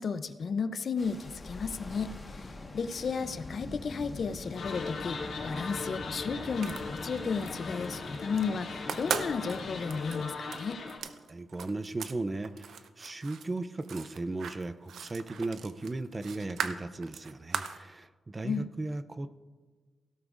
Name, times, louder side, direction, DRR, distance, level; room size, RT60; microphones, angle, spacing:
voice 1, 0.0-10.8 18.4-18.7, left 5 dB, 50° left, 12 dB, 0.5 m, -34 dB
sound 1, 1.0-10.2, left 2 dB, 25° left, 1.3 m, -43 dB
sound 2, 4.6-11.0, left 4 dB, 85° left, 2.3 m, -39 dB
sound 3, 6.6-7.5 7.8-8.5 8.8-12.2 12.4-17.8, right 7 dB, 80° right, 0.6 m, -39 dB
voice 2, 11.3-19.3, right 2 dB, 20° right, 13 dB, 0.3 m, -36 dB
16.5 x 12.0 x 2.4 m, 1.4 s
wide cardioid pair, 160°, 0 cm